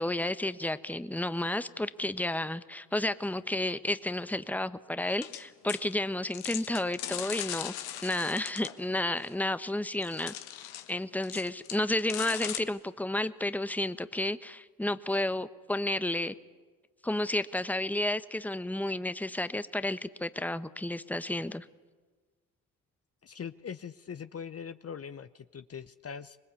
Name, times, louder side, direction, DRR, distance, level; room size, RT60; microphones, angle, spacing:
voice 1, 0.0-7.7 8.0-10.3 10.9-16.3 17.0-21.7, left 1 dB, 5° left, 13 dB, 1.1 m, -31 dB
sound 1, 5.2-5.4 5.7-5.9 6.3-8.8 9.2-9.3 10.0-10.9 11.2-12.6, left 12 dB, 80° left, 1.4 m, -39 dB
voice 2, 23.2-26.4, left 7 dB, 40° left, 12 dB, 0.9 m, -42 dB
25.5 x 20.5 x 8.4 m, 1.4 s
hypercardioid pair, 50°, 37 cm